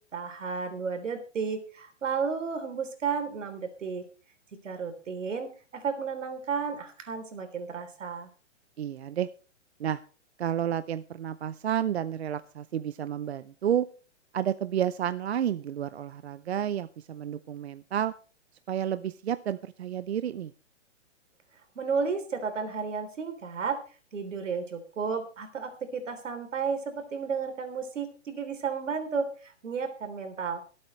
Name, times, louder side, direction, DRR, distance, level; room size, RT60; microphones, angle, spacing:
voice 1, 0.1-4.0 4.6-8.3 21.8-23.8 24.1-30.6, right 5 dB, 90° right, 8 dB, 3.5 m, -33 dB
voice 2, 8.8-9.3 9.8-10.0 10.4-13.9 14.3-18.1 18.7-20.5, right 10 dB, 60° right, 14 dB, 0.6 m, -30 dB
24.0 x 8.7 x 3.2 m, 0.37 s
hypercardioid pair, 180°, 37 cm